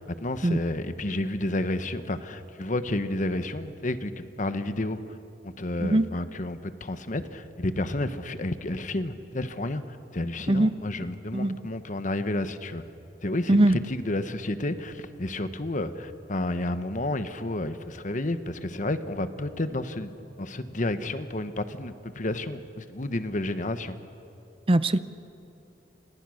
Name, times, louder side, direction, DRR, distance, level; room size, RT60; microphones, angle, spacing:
voice 1, 0.0-5.2 5.4-12.8 13.2-20.1 20.4-24.0, left 1 dB, 45° left, 10 dB, 1.2 m, -31 dB
voice 2, 13.5-13.8 24.7-25.0, right 1 dB, 30° right, 13 dB, 0.7 m, -20 dB
29.0 x 26.5 x 6.5 m, 2.8 s
head